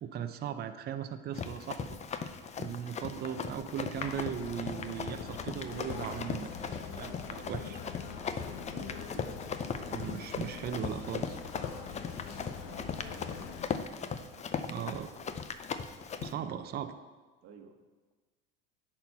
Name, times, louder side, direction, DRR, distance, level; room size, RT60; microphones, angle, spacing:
voice 1, 0.0-7.8 9.9-11.4 14.7-15.1 16.2-17.0, right 9 dB, 30° right, 8 dB, 0.6 m, -38 dB
Run, 1.3-16.3, left 6 dB, 20° left, 0.5 m, -39 dB
sound 1, 3.9-13.6, left 6 dB, 75° left, 1.2 m, -44 dB
sound 2, 7.9-10.2 10.9-14.3, left 2 dB, 5° left, 1.2 m, -63 dB
voice 2, 8.7-9.5 12.5-13.9 14.2-15.3 16.2-16.6 17.4-17.8, right 6 dB, 50° right, 5 dB, 1.2 m, -55 dB
10.5 x 4.4 x 5.6 m, 1.3 s
supercardioid pair, 110°, 31 cm